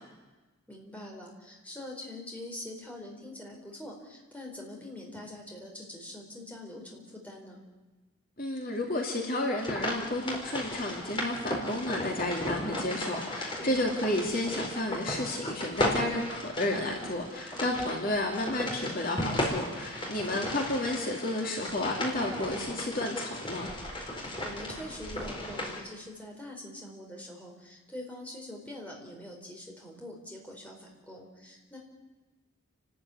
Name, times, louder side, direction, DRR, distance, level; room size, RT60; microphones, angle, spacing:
voice 1, 0.7-7.6 13.6-13.9 20.0-20.4 24.4-31.8, left 1 dB, 5° left, -1 dB, 4.5 m, -44 dB
voice 2, 8.4-23.7, left 1 dB, 40° left, 1 dB, 2.6 m, -32 dB
sound 1, 9.6-25.8, left 1 dB, 25° left, 4.1 m, -35 dB
29.5 x 13.0 x 9.6 m, 1.2 s
head